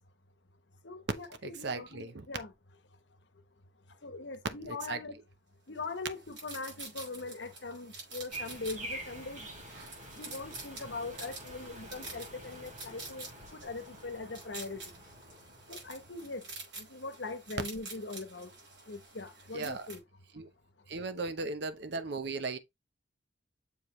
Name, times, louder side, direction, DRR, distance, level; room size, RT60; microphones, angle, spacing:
voice 1, 0.8-2.5 4.0-5.2 5.7-9.5 10.2-14.8 15.7-16.4 16.8-18.5 18.9-20.0, left 3 dB, 70° left, 1.0 m, -41 dB
voice 2, 1.4-2.3 4.7-5.0 19.5-19.9 20.3-20.5 20.9-22.6, right 3 dB, 65° right, 0.8 m, -37 dB
sound 1, 5.8-20.0, right 3 dB, 80° right, 5.0 m, -48 dB
sound 2, 8.3-16.5, right 1 dB, 45° right, 3.5 m, -47 dB
7.0 x 4.9 x 3.1 m
head